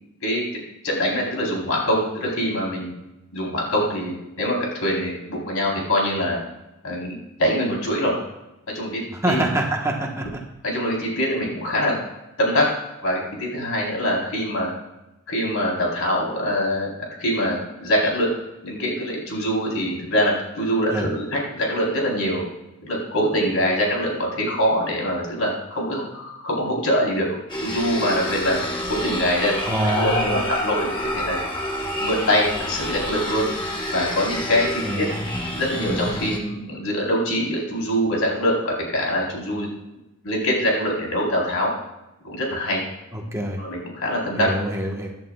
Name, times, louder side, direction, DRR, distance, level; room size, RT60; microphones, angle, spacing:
voice 1, 0.8-2.9 3.3-6.4 6.8-7.1 7.4-8.2 8.7-9.4 10.6-12.0 12.4-12.7 13.0-14.7 15.3-16.9 17.2-18.3 18.6-22.4 22.8-27.3 27.6-28.6 28.9-29.5 29.9-31.4 32.0-33.5 33.9-35.0 35.6-39.7 40.2-41.7 42.2-42.8 43.6-44.5, equal, 85° left, -3 dB, 4.0 m, -23 dB
voice 2, 9.2-10.2 20.9-21.1 29.7-30.4 34.8-35.3 43.1-43.6 44.4-45.1, right 1 dB, 15° right, 0 dB, 1.3 m, -25 dB
sound 1, 27.5-36.4, left 1 dB, 20° left, 1.3 m, -28 dB
15.5 x 10.5 x 2.4 m, 0.93 s
head